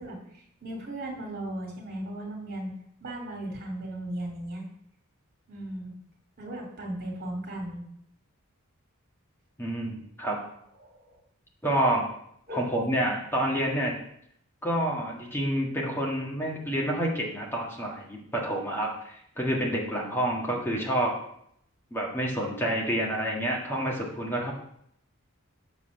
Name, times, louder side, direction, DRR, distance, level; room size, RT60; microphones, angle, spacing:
voice 1, 0.0-2.7 3.0-4.6 5.5-5.9 6.4-7.8 10.8-11.2 12.5-12.8, right 1 dB, 45° right, 0 dB, 2.6 m, -37 dB
voice 2, 9.6-10.4 11.6-12.1 12.5-14.0 14.6-21.2 21.9-24.5, right 1 dB, 10° left, -2 dB, 1.7 m, -28 dB
7.3 x 4.1 x 6.6 m, 0.71 s
head